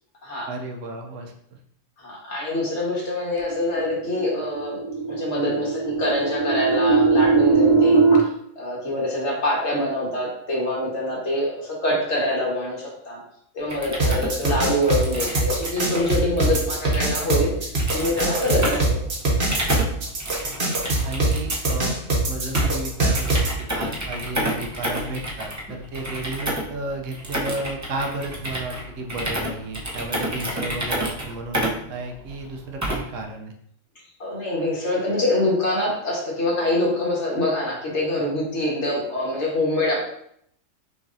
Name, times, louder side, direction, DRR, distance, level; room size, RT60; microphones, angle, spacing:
voice 1, 0.5-1.6 20.4-20.5 21.0-22.0 22.3-33.5, right 2 dB, 70° right, 3 dB, 1.0 m, -33 dB
voice 2, 2.0-4.8 5.1-8.3 8.5-13.2 13.5-17.5 17.9-19.0 34.2-40.0, left 1 dB, 60° left, -4 dB, 1.6 m, -25 dB
sound 1, 3.5-8.2, right 4 dB, 40° left, 0.6 m, -20 dB
sound 2, 13.6-33.2, right 1 dB, 20° right, 0.5 m, -31 dB
sound 3, 14.0-23.5, right 2 dB, 55° right, 1.3 m, -22 dB
5.9 x 3.1 x 2.6 m, 0.71 s
omnidirectional pair, 1.4 m